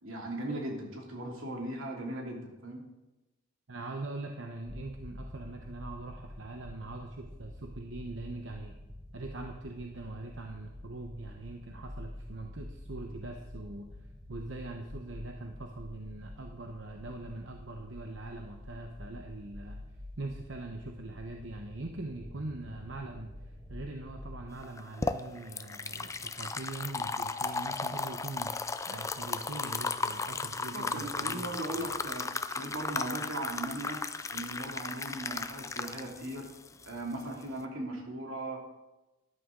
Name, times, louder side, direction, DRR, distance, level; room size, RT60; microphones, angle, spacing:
voice 1, 0.0-2.8 30.7-34.0 34.3-36.5 36.8-38.6, right 1 dB, 85° right, 0 dB, 2.7 m, -38 dB
voice 2, 3.7-8.7 9.1-13.9 14.3-19.8 20.2-31.5, right 2 dB, 70° right, 3 dB, 1.0 m, -42 dB
sound 1, 4.7-24.5, left 1 dB, 5° right, 1.5 m, -47 dB
sound 2, 24.6-37.6, left 4 dB, 15° left, 0.4 m, -35 dB
13.5 x 11.5 x 3.8 m, 1.0 s
head